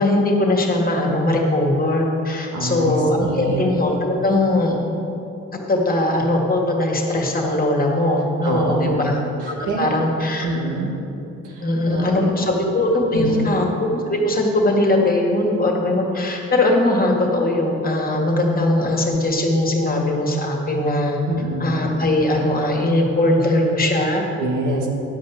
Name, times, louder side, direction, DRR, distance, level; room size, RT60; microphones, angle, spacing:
voice 1, 0.0-4.8 5.5-9.2 9.5-10.5 11.6-21.2 21.6-24.2, left 1 dB, 30° left, 0 dB, 1.9 m, -20 dB
voice 2, 2.5-3.6 8.4-9.1 9.4-10.0 10.4-10.9 11.4-12.5 13.1-13.5 21.3-21.8 24.4-24.9, right 1 dB, 85° right, 0 dB, 1.8 m, -26 dB
10.5 x 5.2 x 7.3 m, 2.8 s
cardioid pair, 90°, 30 cm